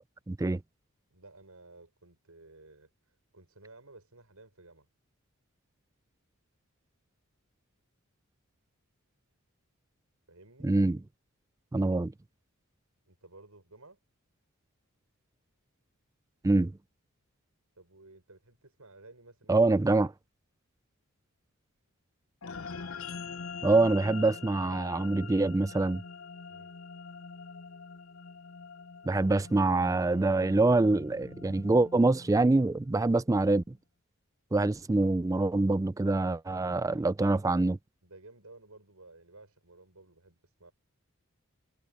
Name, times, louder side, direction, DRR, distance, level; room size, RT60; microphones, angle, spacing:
voice 1, 0.3-0.6 10.6-11.0 11.7-12.1 16.4-16.7 19.5-20.1 23.6-26.0 29.0-33.8 34.5-37.8, right 2 dB, 15° right, 0.3 m, -25 dB
voice 2, 1.1-4.9 10.3-10.7 13.1-14.0 17.7-19.8 26.5-26.7 38.0-40.7, right 2 dB, 85° right, 6.2 m, -55 dB
sound 1, 22.4-33.0, left 5 dB, 70° left, 0.8 m, -44 dB
head